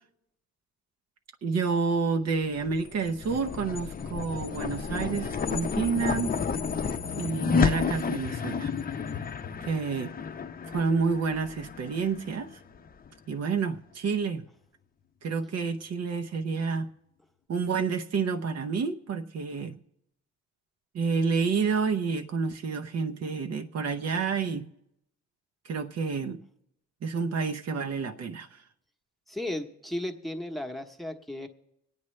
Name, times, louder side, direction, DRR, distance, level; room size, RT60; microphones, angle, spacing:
voice 1, 1.4-6.3 7.2-8.7 9.7-10.1 10.7-12.5 13.3-14.5 15.2-16.9 17.5-19.8 20.9-24.7 25.6-26.4 27.0-28.5, right 5 dB, 55° right, 5 dB, 0.8 m, -29 dB
sound 1, 2.6-13.1, left 5 dB, 30° left, 0.6 m, -31 dB
voice 2, 29.3-31.5, left 1 dB, ahead, 5 dB, 1.0 m, -35 dB
24.5 x 9.0 x 3.2 m, 0.79 s
cardioid pair, 90°, 30 cm